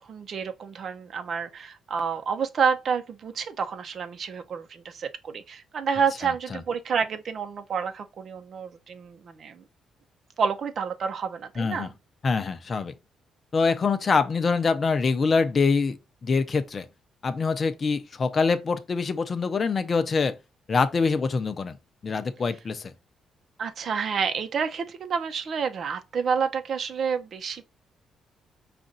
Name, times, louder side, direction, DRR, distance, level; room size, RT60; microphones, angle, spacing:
voice 1, 0.0-9.6 10.4-11.9 23.6-27.6, right 6 dB, 55° right, 0.7 m, -29 dB
voice 2, 11.6-11.9 12.2-12.9 13.5-16.9 17.2-20.4 20.7-21.8 22.0-22.9, left 4 dB, 40° left, 0.7 m, -24 dB
5.1 x 2.5 x 3.9 m
cardioid pair, 90°, 0 cm